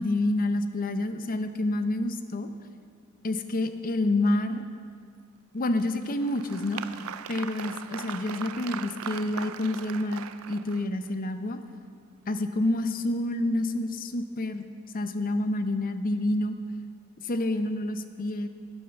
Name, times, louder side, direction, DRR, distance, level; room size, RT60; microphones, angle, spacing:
voice 1, 0.0-2.5 3.2-4.6 5.5-6.8 7.3-11.6 12.3-14.7 14.9-16.6 17.2-18.5, left 1 dB, 40° left, 9 dB, 0.7 m, -28 dB
Applause, 5.8-11.1, right 8 dB, 80° right, 0.5 m, -39 dB
12.0 x 9.9 x 5.9 m, 2.1 s
head